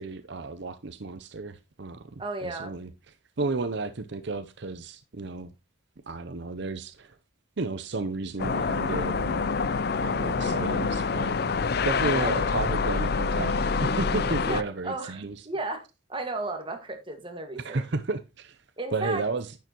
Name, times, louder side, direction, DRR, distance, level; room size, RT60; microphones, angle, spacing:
voice 1, 0.0-2.1 2.4-2.9 3.4-5.5 6.1-7.2 7.6-9.5 10.0-11.5 11.8-15.5 17.6-18.6 18.9-19.6, right 3 dB, 60° right, 0.7 m, -33 dB
voice 2, 2.2-2.7 12.1-12.4 14.4-17.8 18.8-19.2, right 2 dB, 25° right, 1.7 m, -34 dB
sound 1, 8.4-14.6, left 4 dB, 50° left, 0.5 m, -26 dB
10.5 x 9.2 x 3.0 m
head